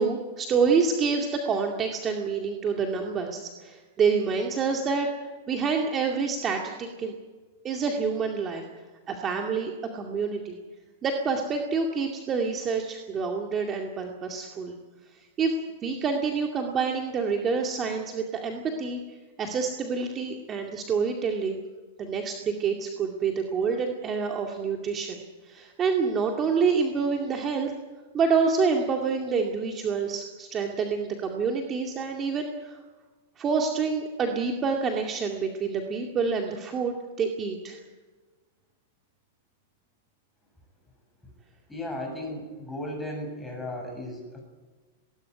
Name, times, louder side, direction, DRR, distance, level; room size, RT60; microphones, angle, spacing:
voice 1, 0.0-5.1 5.5-7.1 7.6-8.6 9.1-10.6 11.0-14.7 15.4-15.6 15.8-19.0 19.4-21.6 22.0-25.2 25.5-27.7 28.1-32.8 33.4-37.8, right 5 dB, 25° right, 2 dB, 2.3 m, -27 dB
voice 2, 41.7-44.4, left 1 dB, 5° left, 1 dB, 7.7 m, -35 dB
19.5 x 19.0 x 9.6 m, 1.3 s
supercardioid pair, 145°, 0 cm